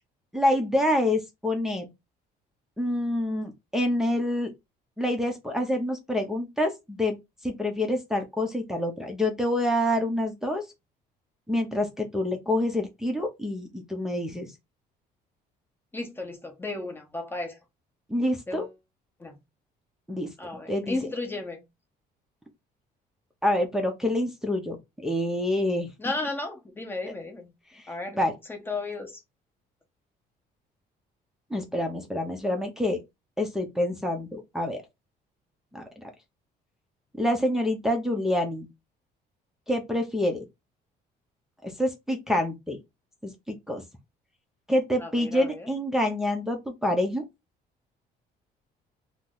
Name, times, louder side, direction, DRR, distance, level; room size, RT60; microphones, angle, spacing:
voice 1, 0.3-1.9 2.8-4.5 5.0-7.2 7.4-10.6 11.5-14.5 18.1-18.7 20.1-20.3 20.7-21.0 23.4-25.9 27.7-27.9 28.1-28.3 31.5-33.0 33.4-34.8 35.7-35.8 37.1-38.7 39.7-40.4 41.6-42.8 43.2-43.8 44.7-47.3, left 1 dB, 5° right, 0.6 m, -27 dB
voice 2, 15.9-17.6 18.5-18.7 19.2-19.4 20.4-21.6 26.0-27.5 27.9-28.2 28.5-29.2 45.0-45.7, left 2 dB, 15° left, 0.9 m, -34 dB
2.7 x 2.0 x 3.7 m
cardioid pair, 110°, 17 cm